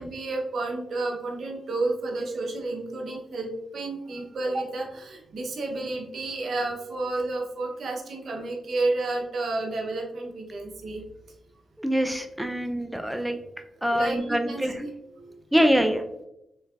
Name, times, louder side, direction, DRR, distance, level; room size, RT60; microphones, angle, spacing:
voice 1, 0.0-11.0 13.9-14.9 15.2-15.4, right 2 dB, 65° right, 1 dB, 0.6 m, -31 dB
voice 2, 11.8-13.4 13.8-14.8 15.5-16.0, equal, 5° right, 6 dB, 0.3 m, -24 dB
3.2 x 3.2 x 2.3 m, 0.84 s
cardioid pair, 80°, 0 cm